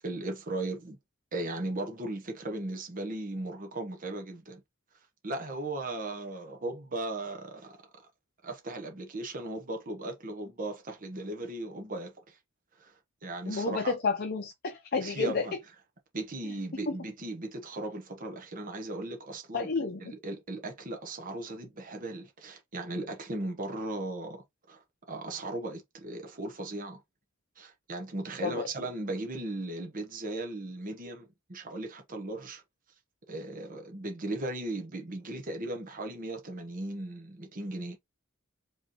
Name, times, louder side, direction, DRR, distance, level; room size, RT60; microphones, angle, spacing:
voice 1, 0.0-1.0 1.3-4.6 5.2-7.8 8.4-12.4 12.8-13.9 15.0-15.6 16.1-19.7 20.0-27.0 27.6-32.6 33.3-38.0, right 2 dB, 40° right, 1.1 m, -37 dB
voice 2, 13.5-15.5 16.9-17.0 19.5-20.1 28.4-28.7, left 4 dB, 50° left, 0.6 m, -30 dB
4.9 x 3.2 x 3.0 m
head